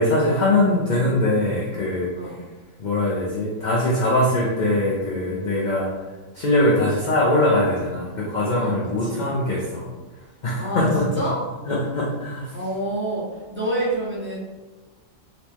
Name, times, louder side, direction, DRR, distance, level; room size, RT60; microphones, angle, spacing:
voice 1, 0.0-2.4 2.8-6.0 6.3-9.9 10.4-11.3 11.7-12.6, left 1 dB, 50° left, -3 dB, 0.6 m, -22 dB
voice 2, 10.6-10.9 11.1-11.4 12.5-13.2 13.5-14.4, right 1 dB, 10° right, -8 dB, 1.2 m, -27 dB
4.0 x 3.5 x 2.9 m, 1.3 s
omnidirectional pair, 1.4 m